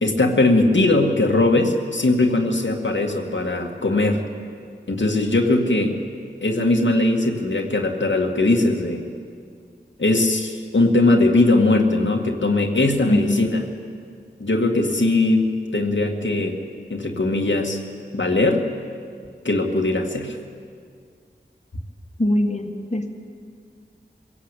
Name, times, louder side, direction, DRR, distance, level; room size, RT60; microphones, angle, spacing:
voice 1, 0.0-4.2 4.9-6.0 6.4-9.0 10.0-13.6 14.4-16.6 16.9-17.8 18.1-18.7 19.4-20.4, left 2 dB, 80° left, 1 dB, 2.0 m, -20 dB
voice 2, 13.0-13.4 22.2-23.1, left 1 dB, 35° left, 2 dB, 1.8 m, -22 dB
24.0 x 17.0 x 8.3 m, 2.2 s
wide cardioid pair, 50°, 19 cm